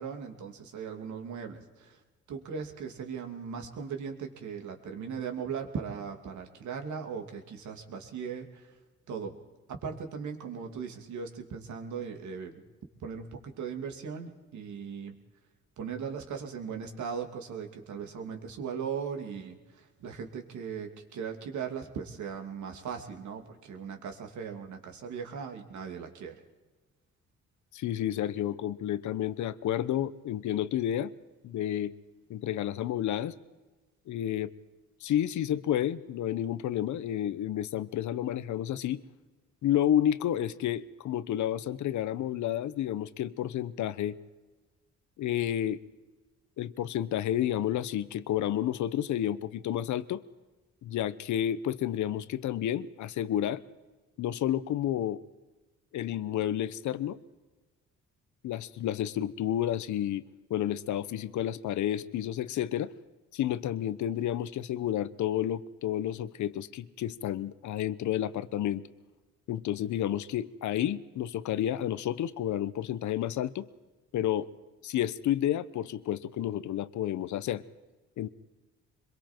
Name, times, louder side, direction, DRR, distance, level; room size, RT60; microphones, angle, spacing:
voice 1, 0.0-2.0 2.3-8.7 9.1-9.3 9.7-12.5 13.0-15.2 15.8-26.4, right 6 dB, 70° right, 4 dB, 2.7 m, -38 dB
voice 2, 27.7-31.1 31.4-31.9 32.3-33.3 34.1-34.5 35.0-39.0 39.6-44.2 45.2-45.8 46.6-50.2 50.8-53.6 54.2-55.2 55.9-57.2 58.4-60.2 60.5-62.9 63.3-68.8 69.5-73.7 74.1-74.5 74.8-77.6 78.2-78.3, left 11 dB, 70° left, 15 dB, 0.9 m, -30 dB
25.5 x 22.5 x 4.6 m, 1.2 s
cardioid pair, 90°, 30 cm